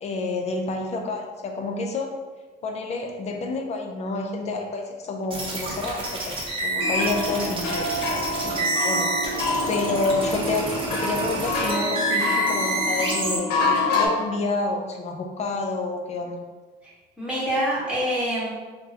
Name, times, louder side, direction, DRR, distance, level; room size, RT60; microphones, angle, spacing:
voice 1, 0.0-2.1 2.6-7.8 8.4-9.1 9.7-16.4, left 3 dB, 40° left, 2 dB, 0.4 m, -29 dB
sound 1, 5.3-13.4, right 2 dB, 30° right, 0.7 m, -28 dB
sound 2, 6.8-14.1, left 2 dB, 90° left, 0.5 m, -27 dB
voice 2, 7.7-8.2 17.2-18.5, equal, 5° right, -8 dB, 1.2 m, -26 dB
3.5 x 2.1 x 2.7 m, 1.3 s
cardioid pair, 110°, 17 cm